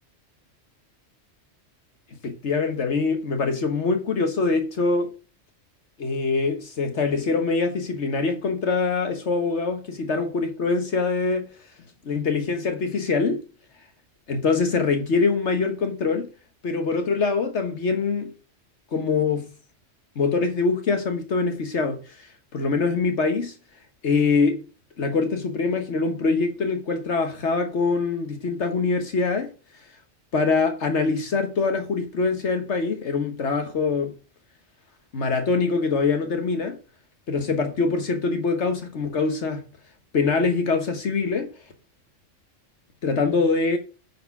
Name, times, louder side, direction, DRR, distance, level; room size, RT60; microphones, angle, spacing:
voice 1, 2.2-5.1 6.0-11.5 12.0-13.4 14.3-16.3 16.6-18.3 18.9-19.5 20.2-22.3 22.5-23.5 24.0-24.6 25.0-29.5 30.3-34.1 35.1-36.8 37.3-39.6 40.1-41.5 43.0-43.8, left 4 dB, 65° left, 1.5 m, -24 dB
9.0 x 4.5 x 5.8 m
omnidirectional pair, 1.3 m